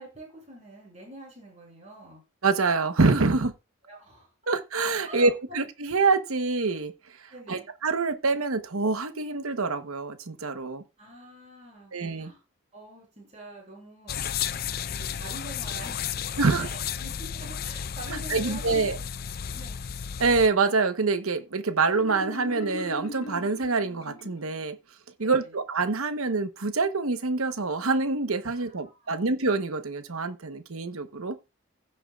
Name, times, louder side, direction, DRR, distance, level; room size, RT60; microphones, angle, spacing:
voice 1, 0.0-2.2 3.8-4.3 5.1-5.6 7.3-7.7 11.0-12.4 12.7-14.2 14.9-19.1 19.4-19.8 25.2-25.6 28.5-29.3, right 2 dB, 30° right, 6.6 m, -46 dB
voice 2, 2.4-3.5 4.5-6.9 7.5-10.8 11.9-12.3 16.4-16.7 18.1-19.0 20.2-24.8 25.2-31.4, right 3 dB, 80° right, 1.0 m, -26 dB
sound 1, 14.1-20.5, left 8 dB, 45° left, 0.4 m, -33 dB
Marimba xylophone, 21.9-24.7, left 1 dB, 75° left, 1.5 m, -40 dB
16.0 x 7.0 x 2.4 m
head